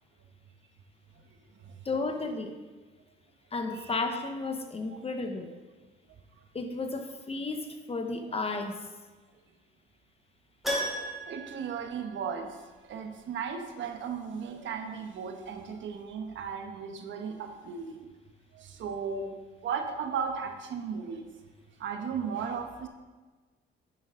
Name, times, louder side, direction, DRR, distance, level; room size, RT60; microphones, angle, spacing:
voice 1, 1.8-2.6 3.5-5.5 6.5-8.8, left 3 dB, 30° left, 6 dB, 1.1 m, -33 dB
Keyboard (musical), 10.6-12.7 13.0-13.1 15.8-15.9 16.1-16.2, equal, ahead, 2.8 m, -35 dB
voice 2, 11.2-18.1 18.5-19.4 19.6-21.3 21.8-22.9, right 6 dB, 70° right, 5 dB, 1.2 m, -36 dB
9.9 x 8.5 x 3.7 m, 1.3 s
cardioid pair, 90°, 20 cm